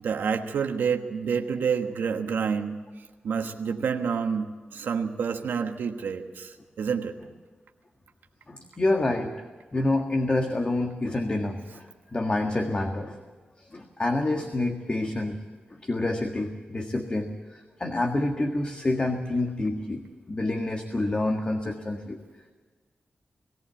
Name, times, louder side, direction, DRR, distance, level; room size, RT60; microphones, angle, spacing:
voice 1, 0.0-2.8 3.2-6.5 6.8-7.1, right 6 dB, 90° right, 4 dB, 1.3 m, -28 dB
voice 2, 8.5-9.3 9.7-13.2 13.6-15.4 15.7-22.2, left 2 dB, 35° left, 4 dB, 1.8 m, -28 dB
20.5 x 14.5 x 8.6 m, 1.4 s
cardioid pair, 70°, 3 cm